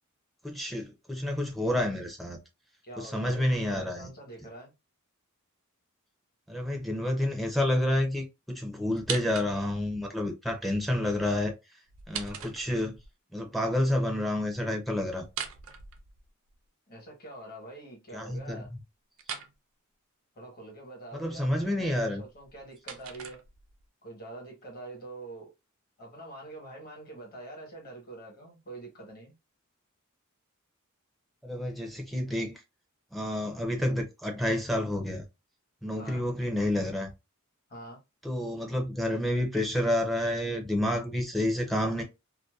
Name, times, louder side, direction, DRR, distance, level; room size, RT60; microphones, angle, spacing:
voice 1, 0.4-2.4 3.0-4.1 6.5-11.5 12.1-13.0 13.3-15.3 18.1-18.8 21.1-22.2 31.4-32.5 33.1-35.2 35.8-37.1 38.2-42.0, left 1 dB, ahead, 0.5 m, -29 dB
voice 2, 2.8-4.7 16.9-18.7 20.3-23.4 24.0-25.5 26.0-29.3 36.0-36.2 37.7-38.0, right 2 dB, 45° left, 1.2 m, -45 dB
sound 1, 8.9-9.9 11.9-13.1 15.2-16.5 19.2-19.5 22.3-23.9, right 7 dB, 65° right, 0.5 m, -40 dB
2.6 x 2.1 x 2.3 m
head